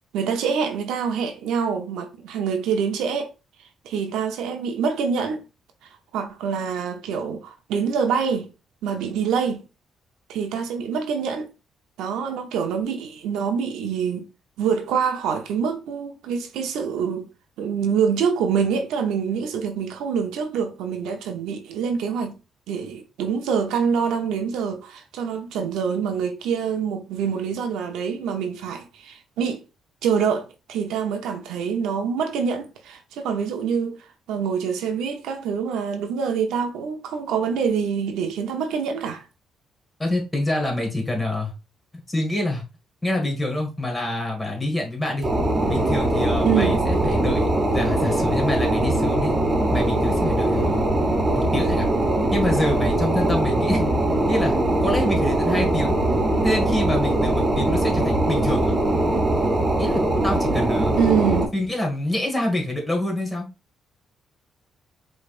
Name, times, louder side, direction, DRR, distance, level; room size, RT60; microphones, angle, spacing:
voice 1, 0.1-3.3 3.8-5.4 6.1-8.5 8.8-9.6 10.3-11.5 12.0-14.3 14.6-17.3 17.6-22.4 22.7-29.6 30.0-34.0 34.3-39.2 46.4-46.8 61.0-61.5, right 6 dB, 90° right, 0.8 m, -25 dB
voice 2, 40.0-41.5 42.1-42.6 43.0-45.3 45.7-47.5 47.7-49.4 49.7-50.9 51.3-51.9 52.3-53.9 54.3-56.0 56.4-58.7 59.8-61.0 61.5-63.5, left 1 dB, 15° left, 1.8 m, -26 dB
sound 1, 45.2-61.5, right 1 dB, 35° right, 1.2 m, -21 dB
4.9 x 3.3 x 2.5 m
cardioid pair, 90°, 0 cm